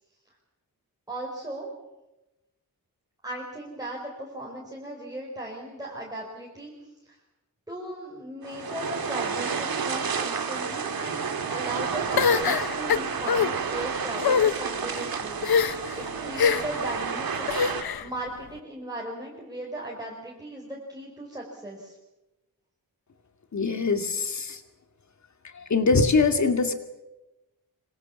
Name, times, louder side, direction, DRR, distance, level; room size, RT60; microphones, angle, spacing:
voice 1, 1.1-1.7 3.2-6.7 7.7-17.4 18.0-22.0, right 1 dB, 10° right, -2 dB, 5.1 m, -37 dB
sound 1, 8.4-17.8, right 6 dB, 70° right, 2.7 m, -30 dB
sound 2, 12.2-13.5 14.2-14.5 15.4-15.9 16.4-16.8 17.5-18.1, left 6 dB, 75° left, 1.0 m, -23 dB
voice 2, 23.5-24.6 25.5-26.7, left 4 dB, 50° left, 7 dB, 2.5 m, -23 dB
26.0 x 25.5 x 7.3 m, 1.0 s
wide cardioid pair, 160°, 37 cm